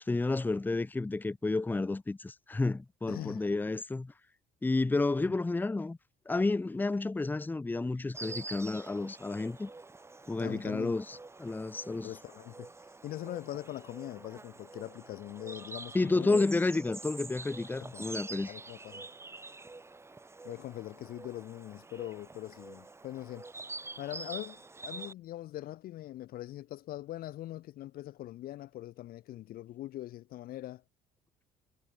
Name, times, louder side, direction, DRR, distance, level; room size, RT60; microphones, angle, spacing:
voice 1, 0.1-4.1 4.6-6.0 6.3-9.7 10.3-12.1 15.9-18.5, left 3 dB, 10° left, 0.7 m, -31 dB
voice 2, 3.1-3.5 5.2-5.3 10.4-11.0 12.0-12.7 13.0-16.5 17.8-18.0 18.5-19.1 20.4-23.6 24.0-30.8, left 14 dB, 60° left, 0.6 m, -42 dB
Insect, 8.1-25.1, right 3 dB, 15° right, 1.8 m, -46 dB
cardioid pair, 110°, 17 cm